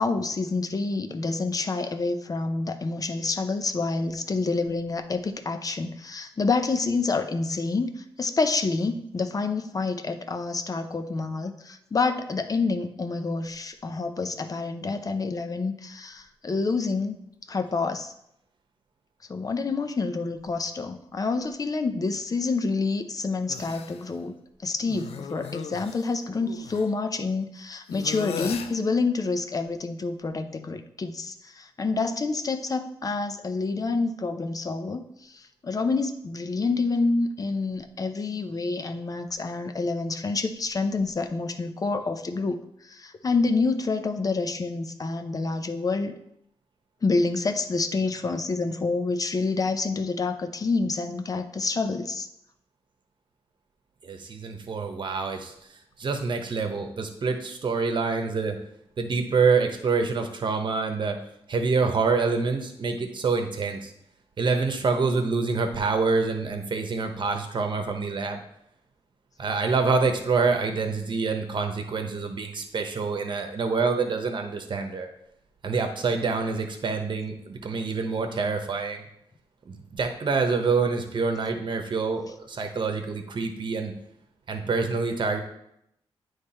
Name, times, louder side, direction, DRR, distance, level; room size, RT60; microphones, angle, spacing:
voice 1, 0.0-17.1 17.5-18.1 19.3-24.3 24.6-46.2 47.0-52.3, left 3 dB, 35° left, 7 dB, 0.6 m, -28 dB
sound 1, 23.5-24.0 24.8-26.9 27.9-28.8, left 7 dB, 85° left, 0.5 m, -37 dB
voice 2, 54.0-55.5 56.0-58.6 59.0-61.2 61.5-63.9 64.4-68.4 69.4-75.1 75.6-79.1 79.6-83.9 84.5-85.4, right 4 dB, 50° right, 5 dB, 1.0 m, -26 dB
9.3 x 3.3 x 4.3 m, 0.77 s
cardioid pair, 80°, 10 cm